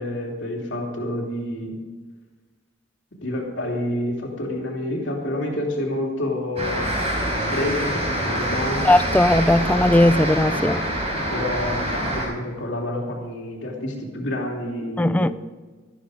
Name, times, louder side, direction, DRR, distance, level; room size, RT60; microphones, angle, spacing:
voice 1, 0.0-1.7 3.2-6.9 7.4-8.8 11.3-15.3, left 1 dB, 70° left, 2.9 m, -28 dB
sound 1, 6.6-12.3, equal, 30° right, 4.5 m, -25 dB
voice 2, 8.8-10.8 15.0-15.3, left 1 dB, 10° left, 0.3 m, -18 dB
13.0 x 12.5 x 5.0 m
head